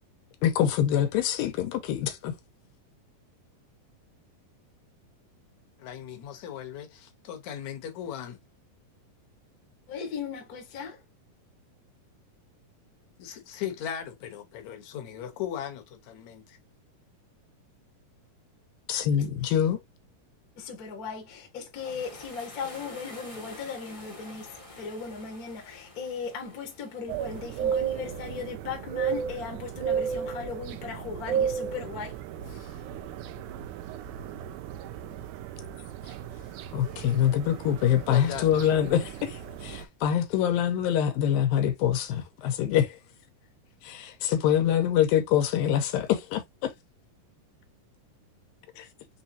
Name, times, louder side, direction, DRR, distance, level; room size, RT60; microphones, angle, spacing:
voice 1, 0.4-2.3 18.9-19.8 36.7-43.0 43.8-46.7 48.8-48.9, left 10 dB, 85° left, 2.7 m, -25 dB
voice 2, 5.8-8.4 13.2-16.6 38.1-38.9, left 9 dB, 65° left, 2.0 m, -38 dB
voice 3, 9.9-11.0 20.6-32.2 32.4-32.8, left 5 dB, 50° left, 1.1 m, -38 dB
sound 1, 21.7-28.4, left 2 dB, 35° left, 0.5 m, -48 dB
sound 2, 27.1-39.9, right 8 dB, 80° right, 1.9 m, -34 dB
6.0 x 3.2 x 2.7 m
omnidirectional pair, 4.0 m